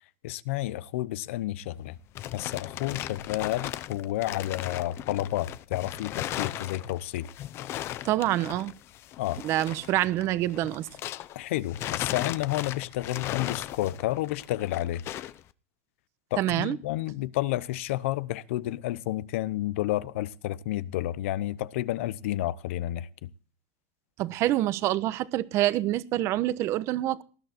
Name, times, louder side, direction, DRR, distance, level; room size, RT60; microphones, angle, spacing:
voice 1, 0.2-2.0 2.3-7.3 9.2-9.4 11.3-15.0 16.3-23.3, left 15 dB, 75° left, 0.9 m, -30 dB
sound 1, 1.8-11.4 11.7-15.4, left 13 dB, 35° left, 0.7 m, -37 dB
voice 2, 8.0-8.7 9.4-10.9 16.4-16.8 24.2-27.2, right 14 dB, 40° right, 1.0 m, -26 dB
19.5 x 11.0 x 4.5 m
supercardioid pair, 150°, 7 cm